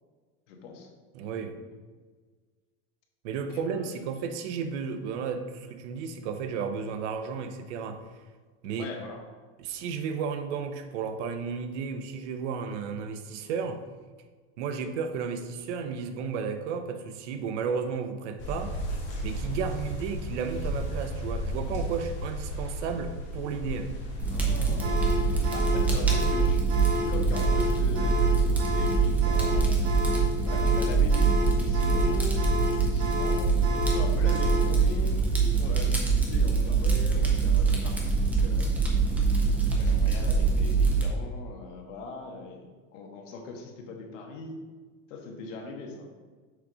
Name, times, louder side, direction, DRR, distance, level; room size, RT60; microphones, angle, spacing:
voice 1, 0.5-0.9 3.3-3.9 8.8-9.2 24.3-25.0 25.5-26.7 27.0-29.7 30.4-32.4 32.7-38.7 39.6-44.6 45.1-46.1, left 3 dB, 85° left, 2 dB, 1.5 m, -40 dB
voice 2, 1.1-1.6 3.2-8.0 8.6-8.9 9.6-13.8 14.6-18.8 19.2-23.9, right 6 dB, 70° right, 7 dB, 0.8 m, -33 dB
sound 1, 18.4-26.4, equal, 30° left, 1.6 m, -34 dB
Fire, 24.2-41.0, right 4 dB, 5° right, 0.5 m, -24 dB
sound 2, 24.8-34.7, equal, 35° right, 1.6 m, -31 dB
6.5 x 3.9 x 4.8 m, 1.5 s
cardioid pair, 175°, 37 cm